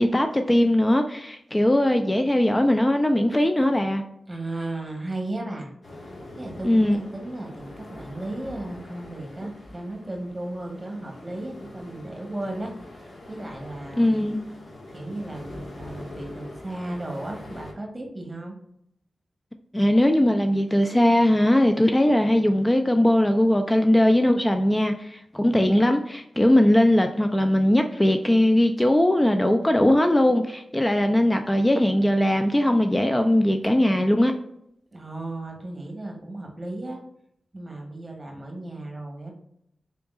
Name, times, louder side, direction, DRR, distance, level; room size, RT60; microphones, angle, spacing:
voice 1, 0.0-4.0 6.6-7.0 14.0-14.4 19.7-34.3, left 1 dB, 20° left, 6 dB, 0.4 m, -20 dB
voice 2, 4.3-5.7 6.4-14.2 14.9-18.5 34.9-37.0 37.5-39.3, right 1 dB, 30° right, 1 dB, 1.3 m, -35 dB
sound 1, 5.8-17.7, left 1 dB, 60° left, 1.3 m, -43 dB
3.8 x 3.4 x 2.4 m, 0.74 s
cardioid pair, 50°, 0 cm